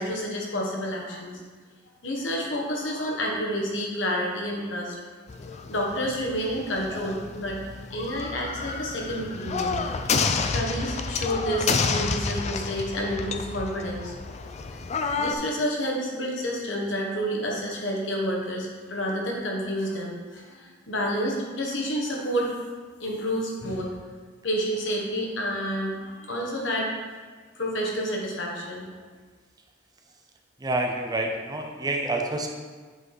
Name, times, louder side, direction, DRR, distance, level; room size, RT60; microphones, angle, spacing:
voice 1, 0.0-1.4 2.0-4.9 5.7-7.6 7.9-9.8 10.5-14.2 15.2-22.5 23.0-24.0 24.4-26.9 27.5-28.8, equal, 70° left, -2 dB, 1.4 m, -29 dB
sound 1, 5.3-15.4, left 4 dB, 35° left, 0.4 m, -30 dB
voice 2, 30.6-32.5, right 2 dB, 20° right, 2 dB, 0.6 m, -28 dB
7.9 x 4.7 x 4.0 m, 1.4 s
head